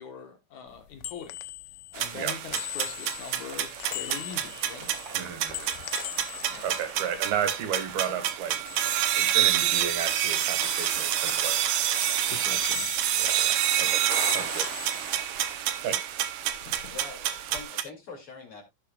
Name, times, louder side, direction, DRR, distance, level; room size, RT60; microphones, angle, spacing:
voice 1, 0.0-1.4 1.9-4.9 6.5-6.6 12.3-12.9 16.7-16.9, left 6 dB, 60° left, 2.4 m, -42 dB
sound 1, 0.7-8.0 8.3-9.7 10.0-16.0 16.3-17.6, left 16 dB, 85° left, 2.7 m, -41 dB
sound 2, 2.0-17.8, right 11 dB, 70° right, 2.2 m, -28 dB
sound 3, 3.3-6.9 7.4-7.5 7.8-8.6, right 4 dB, 40° right, 1.6 m, -49 dB
voice 2, 5.1-5.7 6.6-8.6 9.2-11.6 13.1-14.0 14.3-14.7 15.8-16.0, right 7 dB, 90° right, 3.8 m, -33 dB
voice 3, 16.9-18.6, left 4 dB, 40° left, 3.1 m, -44 dB
16.5 x 6.5 x 2.4 m
omnidirectional pair, 4.2 m